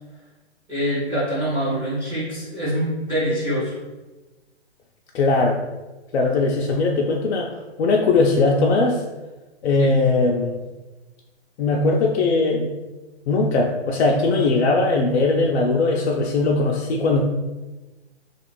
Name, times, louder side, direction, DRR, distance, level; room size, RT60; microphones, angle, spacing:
voice 1, 0.7-3.7 9.8-9.9, equal, 10° right, -11 dB, 0.5 m, -24 dB
voice 2, 5.1-5.6 6.1-7.5 7.8-9.0 9.6-10.6 11.6-12.7 13.3-17.2, left 3 dB, 70° left, 0 dB, 0.5 m, -19 dB
2.5 x 2.4 x 3.0 m, 1.1 s
hypercardioid pair, 140°, 34 cm